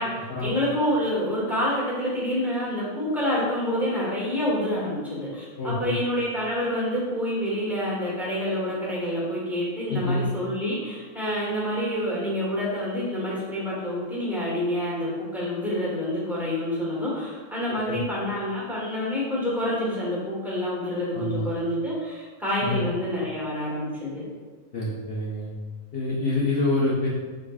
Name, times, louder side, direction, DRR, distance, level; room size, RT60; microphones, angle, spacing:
voice 1, 0.0-24.2, left 1 dB, ahead, -7 dB, 1.1 m, -27 dB
voice 2, 5.6-6.0 9.9-10.3 17.7-18.0 21.1-21.5 22.6-22.9 24.7-25.5 25.9-27.1, left 2 dB, 55° left, -5 dB, 0.7 m, -26 dB
4.9 x 4.0 x 2.3 m, 1.4 s
omnidirectional pair, 1.6 m